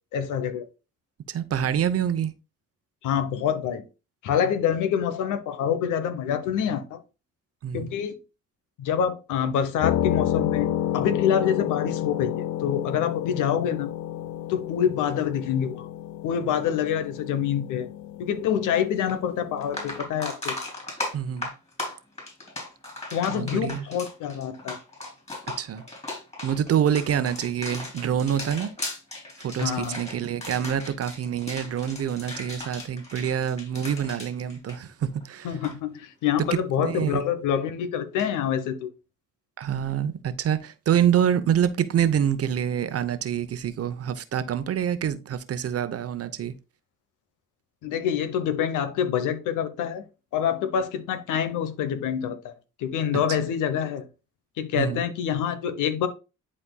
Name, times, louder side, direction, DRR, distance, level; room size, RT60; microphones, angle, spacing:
voice 1, 0.1-0.6 3.0-3.8 4.2-7.0 7.7-8.2 8.8-13.9 14.5-15.9 16.2-17.9 18.2-20.6 23.1-24.8 29.6-30.0 35.4-38.9 47.8-50.0 50.3-52.5 52.8-54.0 54.6-56.1, left 8 dB, 85° left, 1.0 m, -26 dB
voice 2, 1.3-2.3 7.6-7.9 21.1-21.5 23.3-23.8 25.6-25.8 26.4-28.7 29.4-35.6 36.8-37.2 39.6-46.5 54.8-55.0, right 9 dB, 50° right, 0.8 m, -26 dB
sound 1, 9.8-20.0, left 11 dB, 65° left, 0.6 m, -30 dB
sound 2, 19.1-19.2 19.6-35.2 35.5-35.7 38.2-38.3, left 2 dB, 20° left, 3.4 m, -37 dB
11.0 x 4.3 x 2.3 m
cardioid pair, 90°, 30 cm